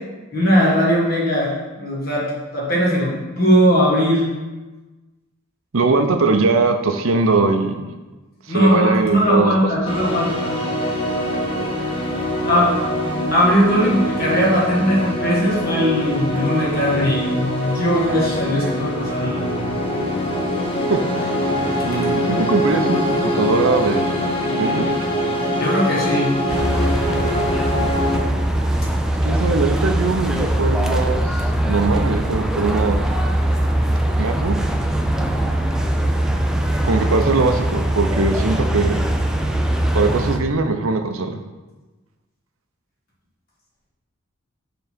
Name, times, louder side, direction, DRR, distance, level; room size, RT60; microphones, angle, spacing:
voice 1, 0.3-1.5 1.8-4.3 8.5-10.5 12.5-12.7 13.3-19.4 25.6-26.3, equal, 45° left, -5 dB, 1.8 m, -19 dB
voice 2, 5.7-7.8 8.5-9.5 20.9-21.3 21.8-24.2 24.5-24.9 29.2-31.2 31.6-33.1 34.2-34.6 36.8-39.0 39.9-41.4, right 3 dB, 75° right, 6 dB, 0.6 m, -20 dB
sound 1, 9.8-28.2, equal, 25° left, 0.9 m, -23 dB
sound 2, 26.5-40.4, right 1 dB, 5° right, 0.3 m, -21 dB
5.7 x 3.8 x 6.0 m, 1.2 s
head